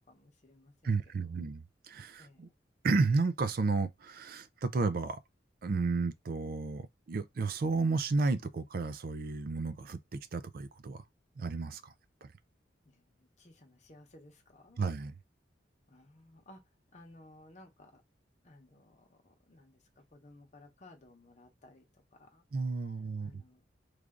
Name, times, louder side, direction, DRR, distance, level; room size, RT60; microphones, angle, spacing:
voice 1, 0.0-1.0 2.2-2.6 12.8-14.8 15.9-18.0 18.4-22.4 23.2-23.6, left 1 dB, 40° left, 0.9 m, -58 dB
voice 2, 0.8-2.5 2.8-5.2 5.6-11.0 11.4-11.9 12.2-12.3 14.8-15.1 22.5-23.4, right 3 dB, 55° right, 0.4 m, -32 dB
3.2 x 2.5 x 3.7 m
head